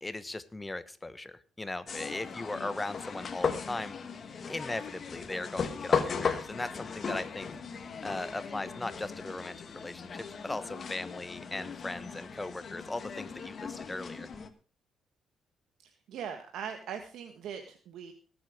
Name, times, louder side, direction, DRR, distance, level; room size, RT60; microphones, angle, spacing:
voice 1, 0.0-4.0 4.5-7.5 8.0-14.3, left 2 dB, 15° left, 13 dB, 1.2 m, -38 dB
sound 1, 1.9-14.5, left 6 dB, 45° left, 1.5 m, -37 dB
voice 2, 15.8-18.1, right 7 dB, 75° right, 6 dB, 1.4 m, -41 dB
18.5 x 7.9 x 5.0 m, 0.38 s
cardioid pair, 90°, 0 cm